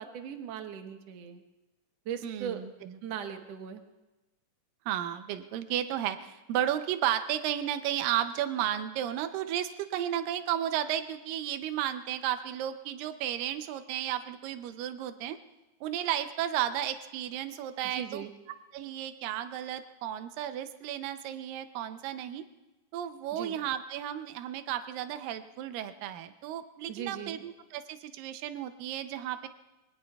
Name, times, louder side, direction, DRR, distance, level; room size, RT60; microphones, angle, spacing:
voice 1, 0.0-1.4 2.1-2.6 3.0-3.8 17.9-18.3 23.3-23.6 26.9-27.4, right 8 dB, 60° right, 5 dB, 2.1 m, -39 dB
voice 2, 2.2-2.9 4.9-15.4 15.8-18.3 18.7-22.4 22.9-29.5, right 11 dB, 90° right, 9 dB, 2.4 m, -33 dB
26.0 x 23.5 x 2.3 m, 1.1 s
omnidirectional pair, 3.9 m